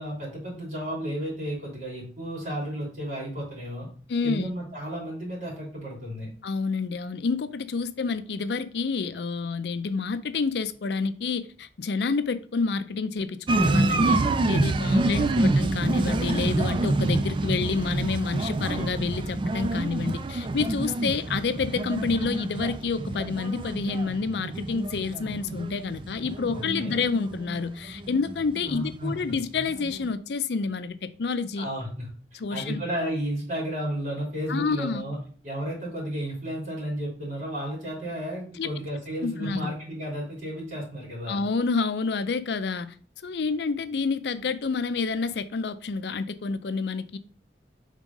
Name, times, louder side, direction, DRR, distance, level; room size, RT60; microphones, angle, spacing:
voice 1, 0.0-3.9 4.2-6.3 14.9-15.4 26.5-27.0 28.7-29.1 31.6-32.1 32.5-35.2 35.4-41.4, equal, 45° right, 3.3 m, -33 dB
voice 2, 4.1-4.5 6.4-14.2 14.5-31.7 32.3-32.8 34.5-35.1 38.6-38.7 39.2-39.7 41.3-43.0 43.2-47.2, left 4 dB, 70° left, 0.4 m, -28 dB
sound 1, 13.5-29.0 29.3-30.1, right 2 dB, 30° right, 0.3 m, -27 dB
5.0 x 3.6 x 5.3 m
head